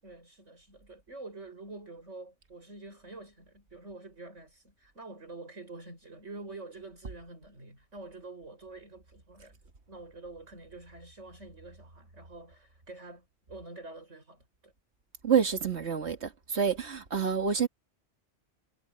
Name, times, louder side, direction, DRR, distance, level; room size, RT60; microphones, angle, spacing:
voice 1, 0.0-9.5 9.9-14.7, right 2 dB, 85° right, 7.4 m, -47 dB
voice 2, 15.2-17.7, right 7 dB, 65° right, 2.2 m, -28 dB
omnidirectional pair, 1.2 m